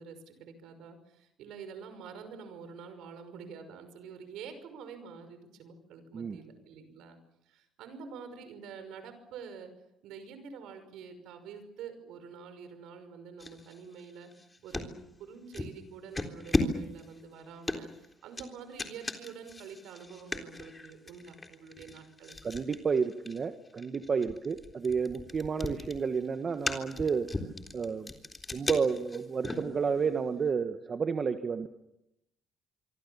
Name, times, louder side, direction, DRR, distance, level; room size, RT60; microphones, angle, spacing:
voice 1, 0.0-7.2 7.5-9.7 10.0-22.4, right 6 dB, 75° right, 10 dB, 5.7 m, -47 dB
sound 1, 13.4-14.9 15.5-15.8 16.1-30.2, left 2 dB, 20° left, 3.7 m, -37 dB
voice 2, 22.4-27.3 27.7-28.1 28.5-31.7, right 5 dB, 40° right, 8 dB, 1.6 m, -31 dB
26.0 x 24.5 x 7.2 m, 0.85 s
supercardioid pair, 70°, 0 cm